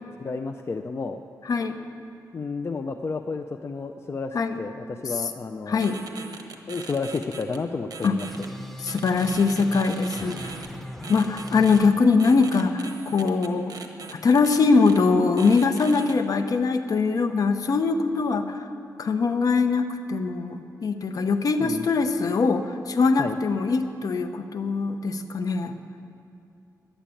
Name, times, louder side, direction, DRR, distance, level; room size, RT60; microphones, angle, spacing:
voice 1, 0.2-1.2 2.3-5.8 6.7-8.5 21.6-21.9 23.2-23.4, left 4 dB, 40° left, 5 dB, 0.5 m, -31 dB
voice 2, 5.7-6.0 8.0-8.1 8.8-10.5 11.1-13.7 14.1-18.6 19.0-25.7, left 4 dB, 60° left, 8 dB, 0.9 m, -22 dB
sound 1, 5.8-7.6 7.9-8.5 8.9-10.7 11.0-11.8 12.2-14.6 14.9-15.0 15.4-16.1, right 4 dB, 60° right, 1.2 m, -39 dB
sound 2, 8.3-11.9, left 1 dB, 5° left, 0.9 m, -40 dB
11.5 x 9.0 x 8.4 m, 2.7 s
cardioid pair, 90°, 7 cm